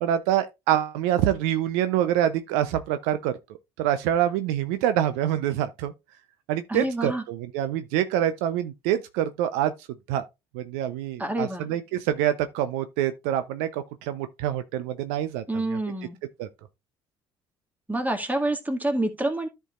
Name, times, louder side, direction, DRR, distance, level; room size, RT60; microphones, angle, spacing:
voice 1, 0.0-3.3 3.8-5.9 6.5-10.2 10.5-15.4 15.7-15.8 16.4-16.5, right 11 dB, 70° right, 0.6 m, -26 dB
voice 2, 6.7-7.2 11.2-11.7 15.5-16.2 17.9-19.5, right 2 dB, 15° right, 1.9 m, -27 dB
13.5 x 4.6 x 2.4 m
hypercardioid pair, 55°, 13 cm